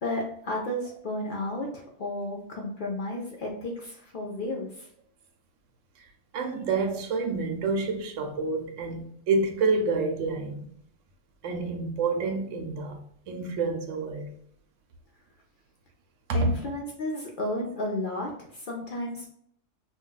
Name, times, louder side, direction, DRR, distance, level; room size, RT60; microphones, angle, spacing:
voice 1, 0.0-4.9 16.3-19.3, left 1 dB, 60° left, 0.5 m, -33 dB
voice 2, 6.3-10.7 11.4-13.0 13.3-14.3 16.3-16.6, right 3 dB, 80° right, 0.9 m, -28 dB
2.3 x 2.2 x 3.8 m
omnidirectional pair, 1.3 m